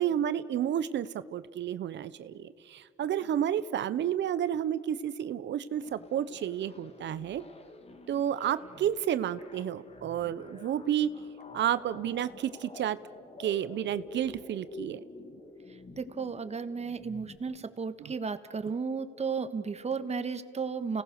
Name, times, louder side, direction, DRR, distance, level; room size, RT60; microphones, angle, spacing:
voice 1, 0.0-7.4 8.1-11.1 11.5-13.0 13.4-15.0 18.0-18.1, right 10 dB, 65° right, 15 dB, 0.8 m, -31 dB
sound 1, 5.8-17.4, left 2 dB, 30° left, 1.8 m, -49 dB
voice 2, 16.0-21.0, right 5 dB, 35° right, 11 dB, 1.4 m, -34 dB
29.5 x 18.5 x 6.5 m, 2.1 s
cardioid pair, 90°, 20 cm